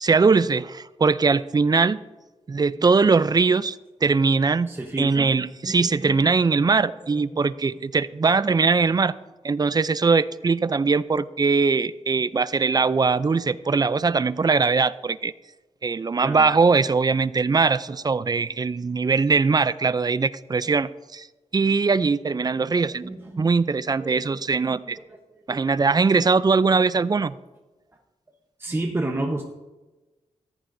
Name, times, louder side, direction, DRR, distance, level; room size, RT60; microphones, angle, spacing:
voice 1, 0.0-2.0 2.5-4.7 5.0-9.1 9.4-15.3 15.8-21.3 21.5-23.1 23.4-25.0 25.5-27.3, right 4 dB, 35° right, 16 dB, 0.4 m, -21 dB
voice 2, 4.7-6.8 7.0-7.5 16.2-16.5 17.9-18.0 18.3-18.5 22.7-23.5 24.0-26.3 28.6-29.4, right 2 dB, 20° right, 2 dB, 0.9 m, -34 dB
14.5 x 14.5 x 2.6 m, 1.1 s
wide cardioid pair, 85°, 12 cm